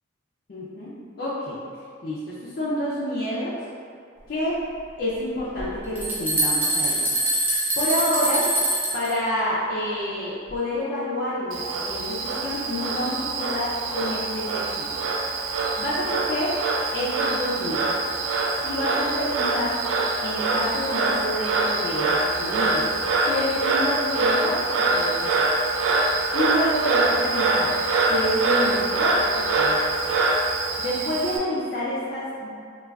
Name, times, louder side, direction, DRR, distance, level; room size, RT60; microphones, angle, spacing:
voice 1, 0.5-0.9 1.2-1.6 2.0-3.6 4.3-4.6 5.0-7.0 7.8-8.5 8.9-15.1 15.3-16.6 16.9-18.0 18.6-19.8 20.2-22.9 23.2-25.5 26.3-27.7 28.1-30.2 30.8-32.5, equal, 50° left, -9 dB, 0.4 m, -28 dB
sound 1, 5.6-9.1, right 1 dB, 10° right, 0.4 m, -23 dB
Frog, 11.5-31.4, right 3 dB, 80° right, 0.3 m, -24 dB
3.3 x 2.3 x 2.3 m, 2.2 s
head